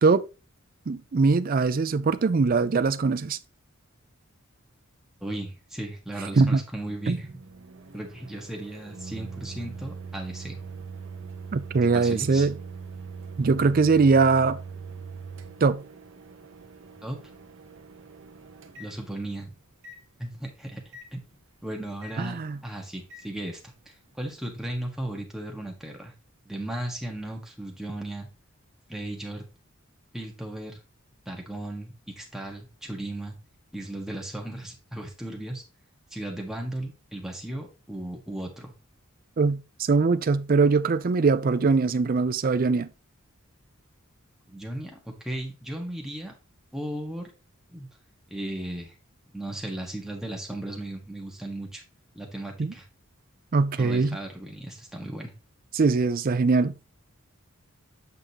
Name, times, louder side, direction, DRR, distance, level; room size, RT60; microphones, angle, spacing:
voice 1, 0.9-3.4 6.4-6.6 7.1-7.2 11.5-12.5 13.4-14.6 15.6-15.8 22.2-22.6 39.4-42.9 52.6-52.7 53.5-54.2 55.7-56.7, right 4 dB, 40° right, 0.4 m, -22 dB
voice 2, 5.2-7.3 7.9-10.6 11.9-12.5 17.0-17.2 18.8-19.5 20.2-20.8 21.1-21.2 21.6-23.7 24.2-26.1 26.4-28.3 28.9-29.4 30.1-30.8 31.2-33.3 33.7-35.6 36.1-38.7 44.5-46.3 46.7-47.3 47.7-47.9 48.3-48.9 49.3-51.8 52.1-52.8 53.8-55.3, right 1 dB, ahead, 1.5 m, -36 dB
Microwave oven, 6.9-19.4 19.8-20.0 20.9-21.1 22.0-22.2 23.1-23.3, right 5 dB, 60° right, 0.8 m, -42 dB
8.1 x 5.1 x 2.9 m
head